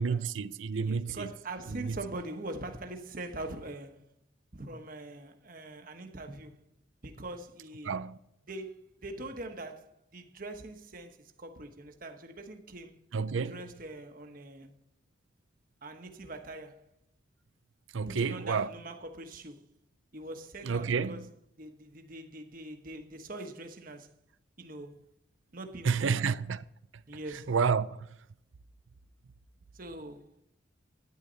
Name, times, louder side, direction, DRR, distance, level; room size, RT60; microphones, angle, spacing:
voice 1, 0.0-1.3 1.9-2.0 7.9-8.2 13.1-13.5 17.9-18.7 20.7-21.2 25.8-26.6 27.5-28.1, right 5 dB, 75° right, 0.5 m, -29 dB
voice 2, 0.8-4.1 4.5-6.7 7.0-8.0 8.5-13.0 13.4-14.8 15.8-16.9 18.1-19.7 20.1-24.1 24.6-25.0 25.5-26.3 27.1-27.5 29.7-30.4, right 2 dB, 45° right, 1.2 m, -43 dB
12.5 x 10.0 x 4.0 m
head